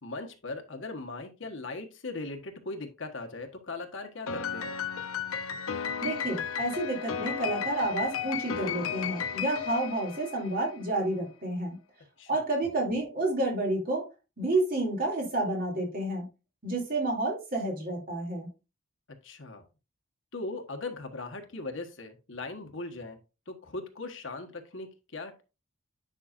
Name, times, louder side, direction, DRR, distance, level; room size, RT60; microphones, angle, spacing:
voice 1, 0.0-4.7 12.2-12.4 19.2-19.6 20.3-23.2 23.5-25.4, left 3 dB, 65° left, 5 dB, 1.4 m, -39 dB
Piano, 4.3-10.8, left 7 dB, 90° left, 0.7 m, -34 dB
voice 2, 6.0-11.8 12.3-14.1 14.4-16.3 16.6-18.5, right 2 dB, 45° right, 0 dB, 2.9 m, -30 dB
10.0 x 5.8 x 2.5 m, 0.30 s
head